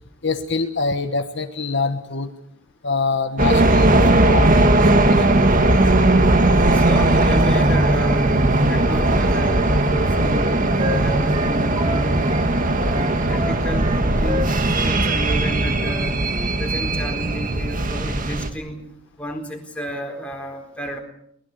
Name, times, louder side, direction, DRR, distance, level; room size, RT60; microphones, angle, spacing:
voice 1, 0.2-2.3 2.8-5.3, left 4 dB, 55° left, 7 dB, 1.4 m, -25 dB
sound 1, 3.4-18.5, right 2 dB, 40° right, 1.9 m, -18 dB
voice 2, 6.7-12.2 12.7-14.4 14.8-16.2 16.6-18.9 19.2-21.0, equal, 5° left, 2 dB, 4.3 m, -32 dB
Wind instrument woodwind instrument, 9.0-12.5 12.9-15.0 15.2-15.4 15.7-16.0 16.3-16.5, equal, 25° right, 1.4 m, -31 dB
22.5 x 20.0 x 6.9 m, 0.73 s
head